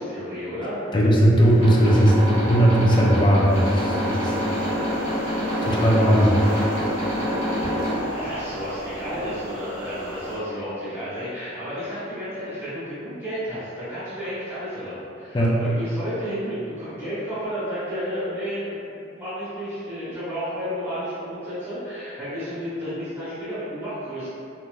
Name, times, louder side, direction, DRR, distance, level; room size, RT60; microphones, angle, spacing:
voice 1, 0.0-0.8 6.4-6.8 7.6-24.3, equal, 15° right, -15 dB, 0.9 m, -32 dB
voice 2, 0.9-4.3 5.6-6.4 15.3-15.6, equal, 25° left, -3 dB, 0.3 m, -18 dB
sound 1, 1.4-8.0, equal, 75° right, 1.2 m, -26 dB
sound 2, 3.5-10.4, equal, 55° right, 0.8 m, -34 dB
3.1 x 2.5 x 2.2 m, 2.6 s
head